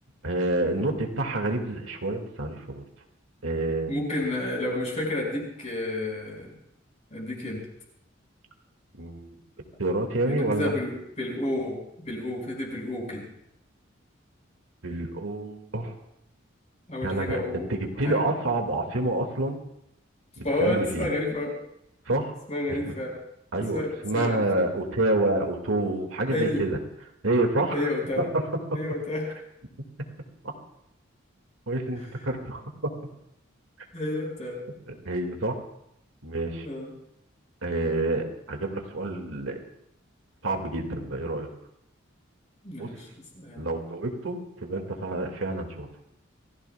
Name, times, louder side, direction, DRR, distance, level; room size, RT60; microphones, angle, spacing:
voice 1, 0.2-2.8 3.4-4.0 9.0-9.4 9.8-10.7 14.8-15.9 17.0-17.4 17.7-19.6 20.4-21.1 22.1-22.3 22.9-23.0 23.5-26.8 27.2-27.9 31.7-32.9 34.9-35.6 36.2-36.7 37.6-39.6 40.4-41.5 42.8-42.9 43.6-45.9, right 2 dB, 75° right, 3 dB, 2.0 m, -28 dB
voice 2, 3.9-6.5 7.1-7.6 10.3-13.2 16.9-18.2 20.4-21.5 22.5-23.1 23.6-24.7 26.3-26.7 27.7-28.3 28.7-29.3 33.9-34.6 36.6-36.9 42.6-43.1 43.3-43.7, left 1 dB, 35° left, -1 dB, 5.5 m, -30 dB
27.0 x 16.0 x 2.3 m, 0.78 s
head